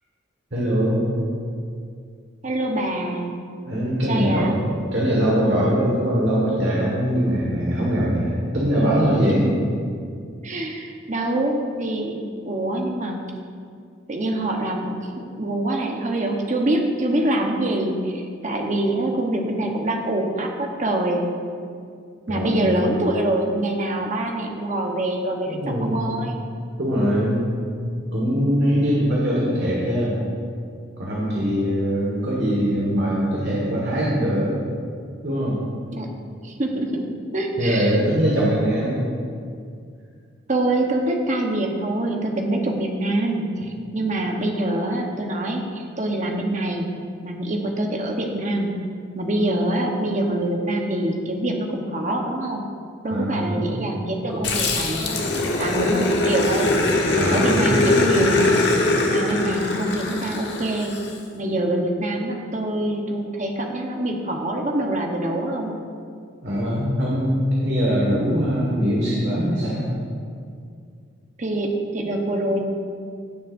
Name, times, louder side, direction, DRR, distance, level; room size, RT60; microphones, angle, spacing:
voice 1, 0.5-1.0 3.7-4.6 4.9-9.5 22.3-22.5 25.5-26.2 26.8-27.4 27.8-30.2 31.0-34.6 35.2-35.6 37.6-39.0 53.1-53.7 54.3-54.5 57.1-57.8 66.4-69.9, equal, 60° right, -5 dB, 1.6 m, -22 dB
voice 2, 2.4-3.4 4.1-4.6 9.4-9.7 10.4-13.2 14.1-21.2 22.3-26.5 35.9-36.1 36.4-37.1 37.3-38.0 40.5-46.9 47.2-48.7 49.1-52.6 53.0-56.7 57.3-58.5 59.1-61.0 61.4-65.7 71.4-72.6, right 1 dB, 40° right, 2 dB, 1.0 m, -25 dB
Growling, 54.4-61.1, left 2 dB, 60° left, 1.2 m, -22 dB
16.0 x 7.4 x 2.6 m, 2.3 s
head